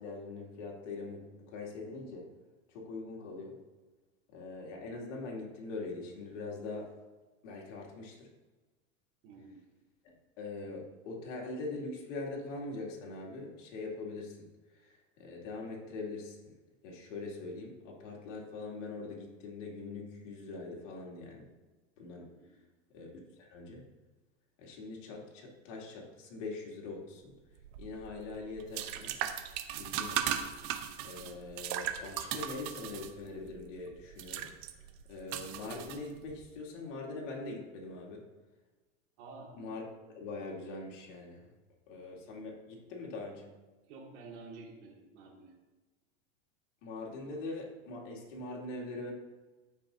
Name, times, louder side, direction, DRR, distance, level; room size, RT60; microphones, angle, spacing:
voice 1, 0.0-2.3 2.7-3.6 4.3-6.9 7.4-8.3 10.4-14.4 14.8-16.5 16.8-21.5 22.0-22.3 22.9-23.1 23.4-23.8 24.6-27.3 27.8-29.1 29.8-30.5 31.0-34.5 35.1-38.2 39.6-39.8 40.1-41.5 41.9-43.5 46.8-49.1, left 3 dB, 75° left, -1 dB, 2.6 m, -42 dB
voice 2, 9.2-9.6 22.2-22.6 39.2-39.6 43.9-45.5, right 3 dB, 65° right, -4 dB, 2.3 m, -50 dB
sound 1, 27.6-36.5, right 10 dB, 50° right, 0.8 m, -38 dB
14.0 x 5.5 x 2.7 m, 1.2 s
supercardioid pair, 130°, 37 cm